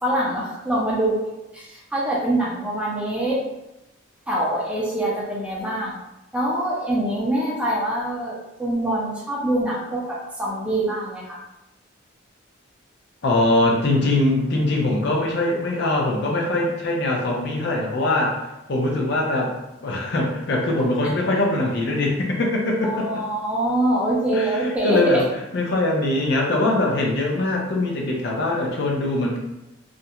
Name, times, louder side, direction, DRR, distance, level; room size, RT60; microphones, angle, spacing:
voice 1, 0.0-1.2 1.5-3.4 4.3-6.0 6.3-11.4 22.8-25.2, right 1 dB, 5° right, -5 dB, 0.4 m, -24 dB
voice 2, 13.2-18.4 18.7-19.5 19.8-23.2 24.3-29.4, left 2 dB, 55° left, -1 dB, 0.5 m, -22 dB
2.4 x 2.1 x 2.8 m, 0.95 s
head